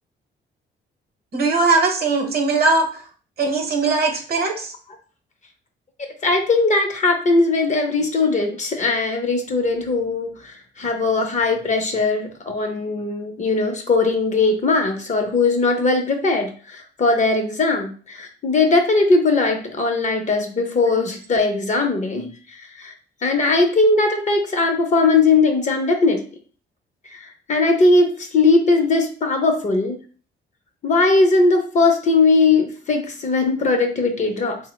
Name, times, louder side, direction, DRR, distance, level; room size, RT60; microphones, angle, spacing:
voice 1, 1.3-2.9 3.4-4.7, right 3 dB, 50° right, 4 dB, 0.8 m, -19 dB
voice 2, 6.0-22.9 23.2-26.2 27.1-30.0 30.8-34.6, left 3 dB, 35° left, 4 dB, 0.6 m, -19 dB
3.2 x 2.0 x 3.1 m, 0.42 s
cardioid pair, 90°, 20 cm